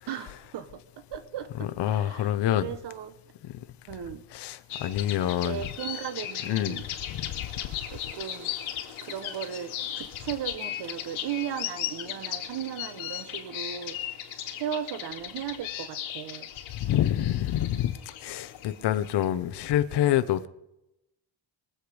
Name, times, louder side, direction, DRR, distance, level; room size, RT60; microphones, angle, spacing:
voice 1, 0.1-3.1 3.9-4.2 5.4-6.8 7.9-8.5 9.0-14.0 14.5-16.5, right 9 dB, 60° right, 1.2 m, -36 dB
voice 2, 1.6-2.7 3.4-3.6 4.3-5.7 6.4-7.4 16.7-20.5, left 12 dB, 60° left, 0.9 m, -27 dB
sound 1, 4.7-19.2, left 11 dB, 85° left, 2.5 m, -37 dB
23.0 x 8.1 x 5.1 m
cardioid pair, 155°, 47 cm